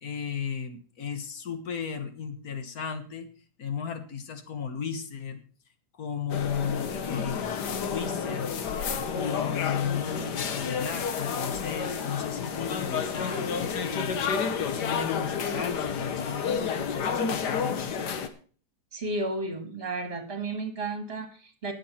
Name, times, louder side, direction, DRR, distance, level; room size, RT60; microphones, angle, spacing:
voice 1, 0.0-3.3 3.6-5.4 6.0-7.5 7.9-8.5 9.1-14.2 14.7-18.2, left 7 dB, 65° left, 8 dB, 1.8 m, -35 dB
sound 1, 6.3-18.3, left 6 dB, 85° left, 1.7 m, -30 dB
voice 2, 18.9-21.7, right 2 dB, 35° right, 5 dB, 2.5 m, -33 dB
19.0 x 7.2 x 4.3 m, 0.43 s
omnidirectional pair, 1.7 m